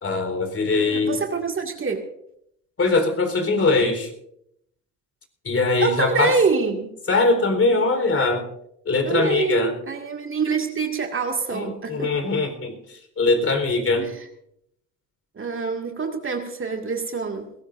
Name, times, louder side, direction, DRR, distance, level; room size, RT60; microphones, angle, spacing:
voice 1, 0.0-1.2 2.8-4.1 5.4-6.4 7.1-8.5 8.9-9.8 11.5-14.1, left 3 dB, 35° left, 5 dB, 4.1 m, -22 dB
voice 2, 0.8-2.0 5.8-6.9 9.1-12.1 13.9-14.1 15.4-17.5, right 4 dB, 30° right, 3 dB, 2.1 m, -25 dB
21.5 x 17.5 x 2.6 m, 0.75 s
hypercardioid pair, 60°, 40 cm